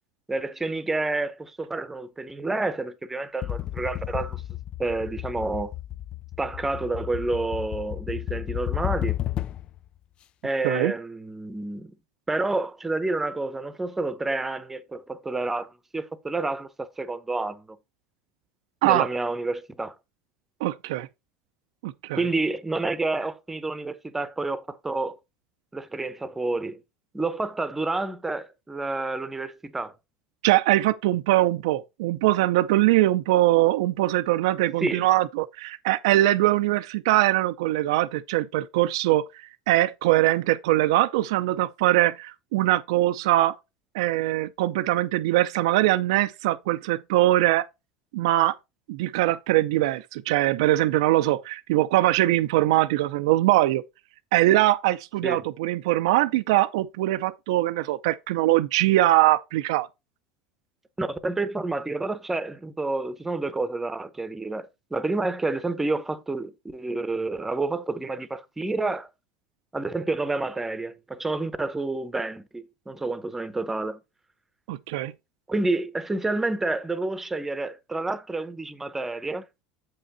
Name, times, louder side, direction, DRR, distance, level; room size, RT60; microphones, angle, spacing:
voice 1, 0.3-4.4 4.8-5.7 6.4-9.2 10.4-11.9 12.3-17.8 18.8-20.0 22.1-25.2 25.7-26.8 27.1-29.9 34.8-35.1 55.2-55.4 61.0-69.1 69.7-74.0 75.5-79.4, right 2 dB, 10° right, 0.9 m, -29 dB
sound 1, 3.4-9.8, left 13 dB, 35° left, 0.3 m, -32 dB
voice 2, 20.6-21.1 21.8-22.2 30.4-39.3 39.7-43.6 43.9-47.7 48.1-48.6 48.9-53.8 54.3-59.9 74.7-75.1, right 16 dB, 85° right, 0.5 m, -22 dB
7.9 x 5.7 x 4.1 m
supercardioid pair, 130°, 3 cm